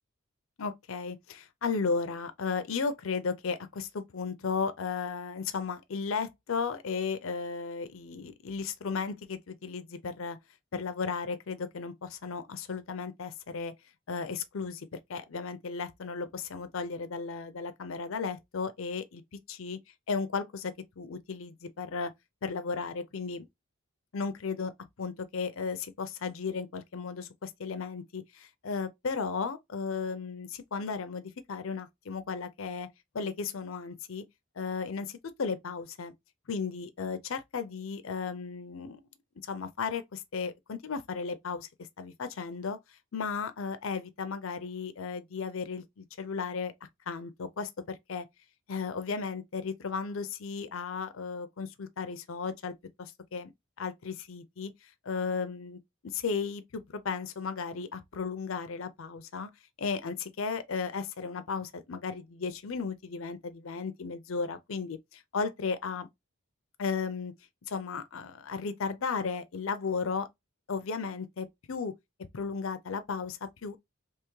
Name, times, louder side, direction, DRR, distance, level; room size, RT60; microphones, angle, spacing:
voice 1, 0.6-10.4 10.7-13.7 14.1-19.2 19.5-19.8 20.1-22.1 22.4-23.4 24.1-24.7 25.0-32.9 33.1-34.2 34.6-36.1 36.5-39.0 39.5-41.7 42.0-42.8 43.1-46.7 47.1-48.3 48.7-52.7 53.0-53.5 53.8-59.5 59.8-66.1 66.8-67.3 67.7-70.3 70.7-71.9 72.3-73.8, left 5 dB, 70° left, 0.5 m, -35 dB
3.5 x 3.0 x 3.1 m
head